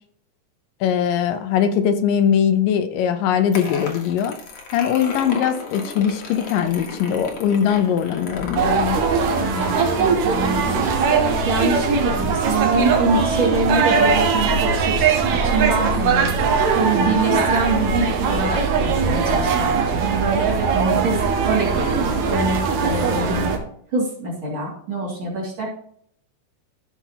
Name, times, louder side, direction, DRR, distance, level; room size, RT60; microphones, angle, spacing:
voice 1, 0.8-4.4 4.7-9.0, left 8 dB, 80° left, 10 dB, 2.2 m, -21 dB
sound 1, 3.5-12.8, left 4 dB, 55° left, 1.9 m, -36 dB
sound 2, 8.6-23.6, right 5 dB, 65° right, 2.1 m, -20 dB
voice 2, 9.4-10.8 11.1-23.5 23.9-25.7, right 3 dB, 40° right, -4 dB, 2.8 m, -25 dB
14.0 x 5.9 x 2.8 m, 0.65 s
omnidirectional pair, 4.0 m